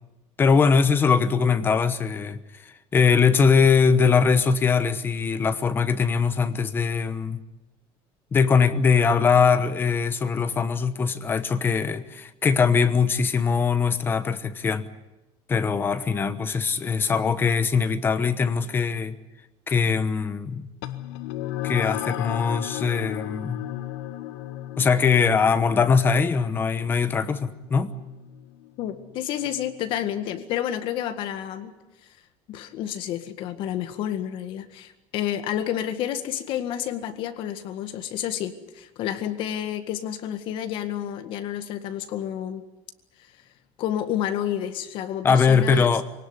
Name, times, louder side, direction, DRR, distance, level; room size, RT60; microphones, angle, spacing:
voice 1, 0.4-7.4 8.3-14.9 15.5-19.2 19.7-20.7 21.6-23.7 24.8-27.9 45.2-46.0, left 5 dB, 20° left, 1.0 m, -21 dB
sound 1, 20.8-29.7, left 13 dB, 85° left, 1.6 m, -35 dB
voice 2, 28.8-31.7 32.5-42.6 43.8-45.9, left 11 dB, 50° left, 1.9 m, -30 dB
24.0 x 18.5 x 9.8 m
cardioid pair, 180°, 11 cm